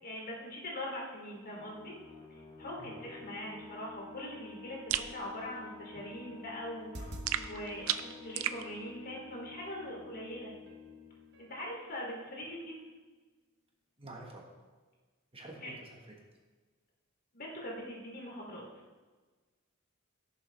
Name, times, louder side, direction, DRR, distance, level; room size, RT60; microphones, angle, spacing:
voice 1, 0.0-2.0 2.3-10.5 11.4-12.8 15.6-15.7 17.3-18.6, left 1 dB, 50° left, -2 dB, 3.0 m, -42 dB
sound 1, 1.3-12.6, left 5 dB, 30° left, 3.7 m, -52 dB
sound 2, 4.9-5.1 7.3-8.6, right 11 dB, 90° right, 0.5 m, -34 dB
sound 3, 6.8-7.3 8.0-8.9 10.0-10.1 10.7-10.9 11.3-11.6 12.0-12.1, right 1 dB, 55° right, 1.2 m, -47 dB
voice 2, 14.0-14.5 15.3-16.2, right 2 dB, 30° right, 0 dB, 1.5 m, -48 dB
17.0 x 7.0 x 3.4 m, 1.3 s
head